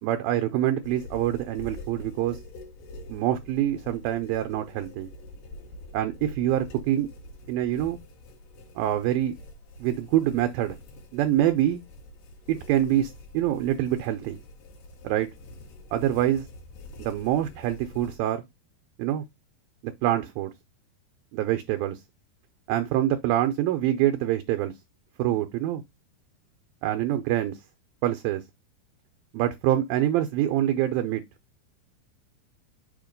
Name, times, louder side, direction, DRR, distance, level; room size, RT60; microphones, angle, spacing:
voice 1, 0.0-2.4 3.1-5.1 5.9-7.1 7.5-8.0 8.8-9.4 9.8-10.8 11.1-11.8 12.5-14.4 15.0-15.3 15.9-16.5 17.0-18.4 19.0-19.2 19.8-20.5 21.3-22.0 22.7-24.7 25.2-25.8 26.8-27.6 28.0-28.4 29.3-31.2, right 12 dB, 80° right, 2.2 m, -25 dB
sound 1, 0.8-18.2, left 1 dB, 85° left, 3.7 m, -45 dB
7.0 x 2.9 x 5.1 m
omnidirectional pair, 4.5 m